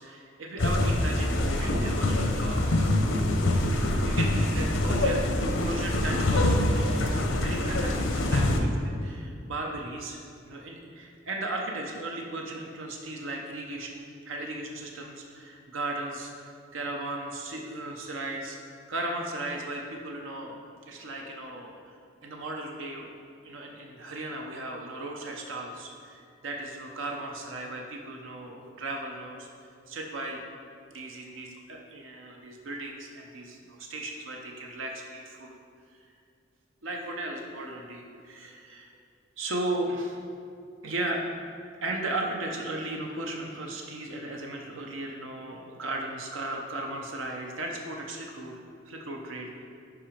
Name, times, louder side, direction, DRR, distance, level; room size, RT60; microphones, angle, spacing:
voice 1, 0.0-2.6 4.0-16.3 16.7-18.6 18.9-20.6 20.9-22.0 22.2-23.1 23.4-29.5 29.9-30.4 30.9-35.6 36.8-38.9 39.4-40.2 40.8-41.2 41.8-48.6 48.9-49.5, right 2 dB, 85° right, 1 dB, 0.7 m, -36 dB
sound 1, 0.6-8.6, left 1 dB, 85° left, 0.7 m, -25 dB
5.9 x 4.9 x 5.0 m, 2.3 s
head